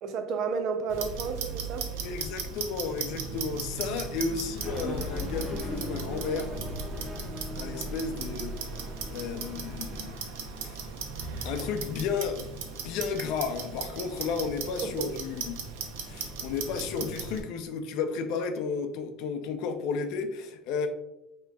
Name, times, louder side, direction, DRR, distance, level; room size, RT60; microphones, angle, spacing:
voice 1, 0.0-1.9 14.8-15.1, right 5 dB, 45° right, 8 dB, 0.5 m, -32 dB
Clock, 0.9-17.4, right 5 dB, 90° right, 0.7 m, -38 dB
voice 2, 2.0-6.6 7.6-8.6 9.1-10.2 10.6-10.9 11.4-12.5 12.8-15.6 16.0-20.9, left 5 dB, 60° left, 7 dB, 0.5 m, -33 dB
sound 1, 4.6-10.1, equal, 10° right, 0.8 m, -37 dB
5.8 x 2.9 x 2.3 m, 0.91 s
cardioid pair, 155°, 0 cm